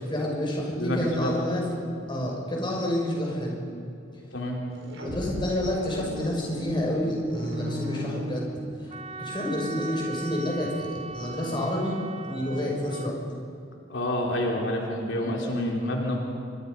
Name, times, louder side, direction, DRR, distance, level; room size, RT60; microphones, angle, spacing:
voice 1, 0.1-1.8 2.1-3.6 4.9-8.5 9.2-13.1, left 1 dB, 25° left, -2 dB, 6.2 m, -29 dB
voice 2, 0.8-1.4 2.2-2.3 4.3-4.6 13.9-16.2, left 1 dB, 85° left, -1 dB, 3.6 m, -28 dB
sound 1, 4.7-9.0, equal, 80° right, 4.5 m, -36 dB
Wind instrument woodwind instrument, 8.9-13.1, right 3 dB, 30° right, 0.7 m, -39 dB
27.5 x 24.5 x 5.5 m, 2.6 s
head